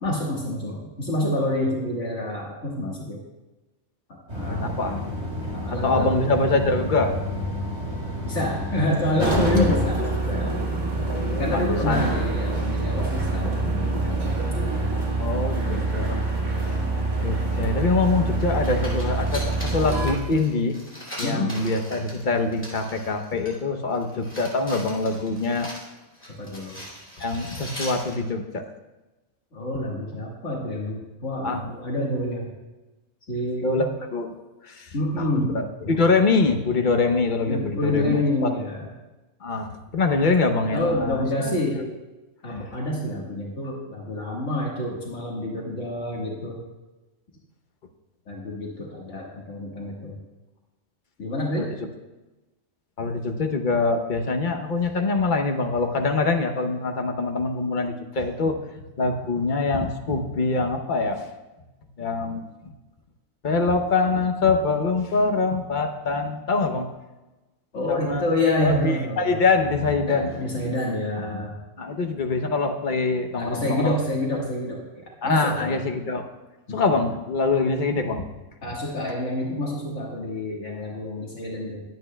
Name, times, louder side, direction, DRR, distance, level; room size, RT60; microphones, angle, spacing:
voice 1, 0.0-3.2 4.1-4.7 5.5-6.3 8.2-10.7 11.4-14.2 15.6-16.0 16.7-16.9 21.2-21.6 26.4-26.9 29.5-32.5 33.3-33.9 34.9-35.5 37.5-38.9 40.7-41.8 42.4-46.6 48.3-50.2 51.2-51.7 67.7-69.4 70.1-71.5 73.3-75.8 76.7-76.8 78.6-81.8, left 1 dB, 80° left, -3 dB, 1.9 m, -28 dB
sound 1, 4.3-9.8, left 1 dB, 60° right, 2.9 m, -30 dB
voice 2, 4.5-5.0 5.8-7.1 9.3-9.8 11.0-12.2 15.2-16.2 16.6-16.7 17.2-20.8 21.2-25.7 27.2-28.6 31.4-31.7 33.6-34.3 34.6-38.5 39.4-41.9 42.5-42.6 51.6-51.7 53.0-58.6 59.0-61.3 62.0-62.4 63.4-66.9 67.9-68.3 68.6-70.7 71.8-73.9 75.2-76.2 76.7-78.3, left 3 dB, 45° left, 5 dB, 0.9 m, -24 dB
sound 2, 9.2-20.1, right 2 dB, 40° right, 1.3 m, -25 dB
sound 3, 18.0-18.1 18.4-23.6 23.9-28.2, equal, 10° left, 2.4 m, -40 dB
21.0 x 8.5 x 2.2 m, 1.1 s
omnidirectional pair, 1.3 m